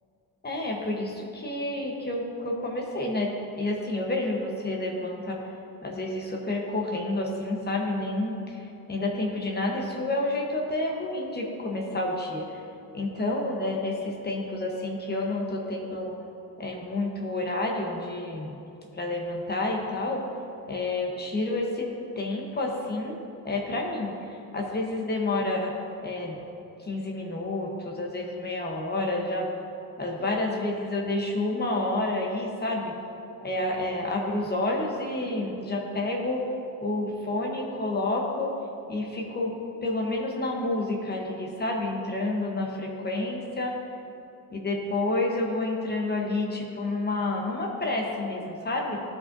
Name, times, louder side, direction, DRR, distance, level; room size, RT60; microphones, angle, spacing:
voice 1, 0.4-5.4 5.8-12.5 12.9-16.1 16.6-18.5 18.9-20.3 20.7-21.9 22.2-23.2 23.4-25.7 26.0-26.4 26.8-29.5 30.0-32.9 33.4-36.5 36.8-38.6 38.9-43.7 44.5-49.0, left 2 dB, 30° left, 0 dB, 1.0 m, -29 dB
14.5 x 5.4 x 2.6 m, 2.8 s
cardioid pair, 115°, 35 cm